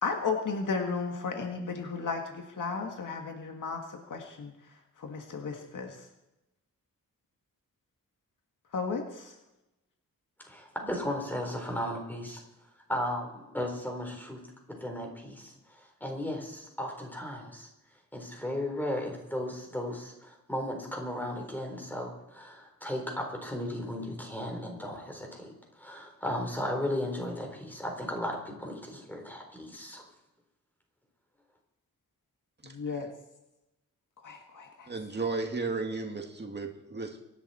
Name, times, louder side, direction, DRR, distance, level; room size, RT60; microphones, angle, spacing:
voice 1, 0.0-4.5 5.0-6.0 8.7-9.3 32.6-33.1 34.2-34.9, left 4 dB, 70° left, 3 dB, 1.8 m, -34 dB
voice 2, 10.5-12.4 12.9-14.4 14.7-17.7 18.1-30.1, left 1 dB, 5° left, 2 dB, 3.9 m, -35 dB
voice 3, 32.6-33.0 34.9-37.2, right 3 dB, 35° right, 3 dB, 2.2 m, -34 dB
24.5 x 11.0 x 4.3 m, 0.94 s
wide cardioid pair, 135°, 32 cm